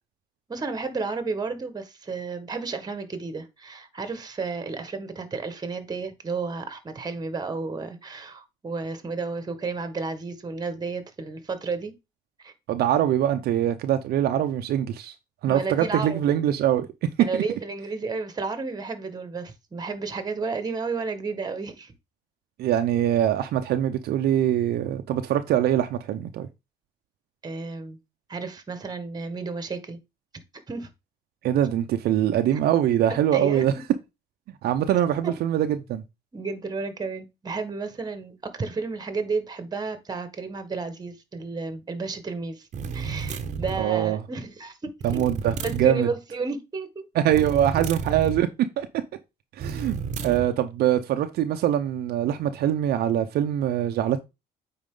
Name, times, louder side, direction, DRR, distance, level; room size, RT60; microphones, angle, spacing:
voice 1, 0.5-11.9 12.4-12.5 15.5-16.2 17.2-21.9 27.4-28.0 28.3-30.0 30.7-30.9 32.5-32.6 33.3-33.7 35.2-35.3 36.3-42.7 42.9-45.2 45.6-47.1, right 4 dB, 25° right, 1.5 m, -32 dB
voice 2, 12.7-15.2 15.4-16.9 17.3-17.4 22.6-26.5 31.4-33.7 34.6-36.0 43.8-44.2 45.0-46.1 47.1-48.9 49.6-54.2, right 11 dB, 70° right, 0.7 m, -23 dB
sound 1, 42.7-43.9 45.0-45.9 47.3-48.4 49.6-50.5, right 5 dB, 45° right, 1.0 m, -31 dB
9.0 x 4.3 x 3.8 m
cardioid pair, 110°, 17 cm